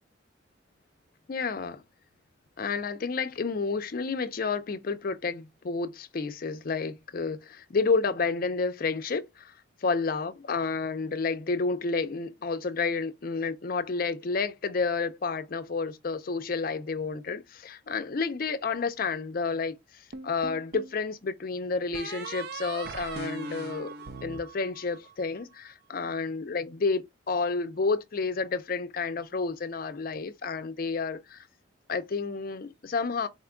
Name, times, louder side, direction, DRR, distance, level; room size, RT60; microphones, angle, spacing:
voice 1, 1.3-1.8 2.6-9.5 9.8-23.9 24.2-31.5 31.9-33.3, left 4 dB, 45° left, 0.5 m, -30 dB
sound 1, 20.1-21.0 21.9-25.3, right 4 dB, 50° right, 0.4 m, -40 dB
4.2 x 2.2 x 3.7 m
head